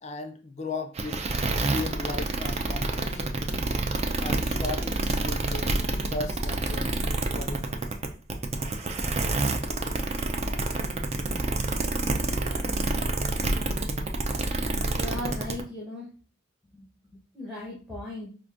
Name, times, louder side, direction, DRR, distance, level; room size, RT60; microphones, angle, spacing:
voice 1, 0.0-1.2 1.6-3.3 4.2-5.7 6.1-7.0 7.3-7.9, left 2 dB, 35° left, 5 dB, 0.5 m, -36 dB
sound 1, 0.9-15.6, right 2 dB, 35° right, 0.4 m, -27 dB
voice 2, 15.0-16.1 16.7-16.9 17.3-18.3, left 1 dB, ahead, -5 dB, 0.9 m, -37 dB
4.8 x 2.6 x 2.5 m, 0.37 s
head